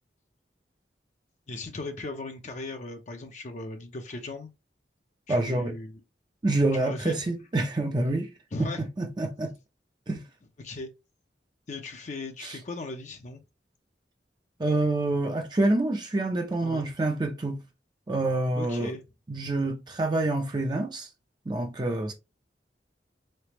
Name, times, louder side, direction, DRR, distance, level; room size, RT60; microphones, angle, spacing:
voice 1, 1.5-4.5 5.3-6.0 6.7-7.2 8.5-8.9 10.6-10.9 11.7-13.4 16.6-16.8 18.6-19.0, left 2 dB, 45° left, 0.5 m, -37 dB
voice 2, 5.3-5.8 6.4-8.3 8.6-8.7 9.0-9.5 10.1-10.2 12.4-12.6 14.6-17.6 18.1-18.9 19.3-21.1 21.5-22.1, right 2 dB, 25° right, 0.5 m, -27 dB
4.0 x 3.3 x 2.9 m
head